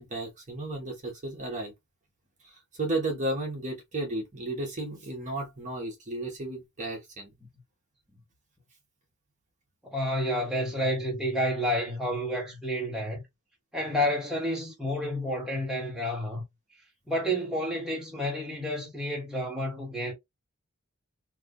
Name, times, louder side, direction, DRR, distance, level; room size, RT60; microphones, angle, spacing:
voice 1, 0.0-1.7 2.4-7.3, right 2 dB, 35° right, 1.0 m, -33 dB
voice 2, 9.8-13.2 13.7-16.4 17.1-20.1, equal, ahead, 1.3 m, -30 dB
2.7 x 2.5 x 3.6 m
head